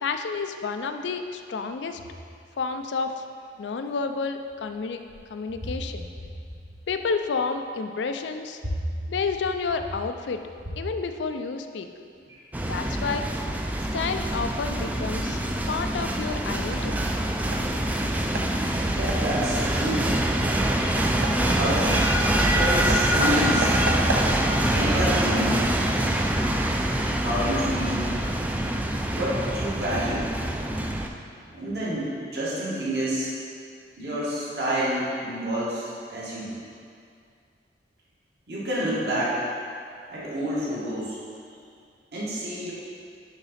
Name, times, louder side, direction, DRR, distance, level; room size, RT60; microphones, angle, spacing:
voice 1, 0.0-2.0 2.6-3.2 3.6-5.0 5.3-6.1 6.9-8.6 9.1-10.4 10.8-11.9 12.6-13.3 13.9-15.4 15.7-17.1, left 4 dB, 85° left, 7 dB, 0.4 m, -30 dB
sound 1, 12.5-31.1, right 1 dB, 10° right, 0.3 m, -25 dB
sound 2, 15.9-27.2, right 2 dB, 80° right, 0.7 m, -37 dB
voice 2, 18.9-20.1 20.8-21.2 21.5-22.0 22.6-23.8 24.7-25.6 27.2-28.1 29.1-30.3 31.5-33.3 34.0-36.6 38.5-39.4 40.1-41.2 42.1-42.7, equal, 65° right, -8 dB, 1.9 m, -28 dB
sound 3, 19.6-32.0, equal, 30° right, 1.0 m, -43 dB
10.5 x 4.0 x 4.2 m, 2.3 s
head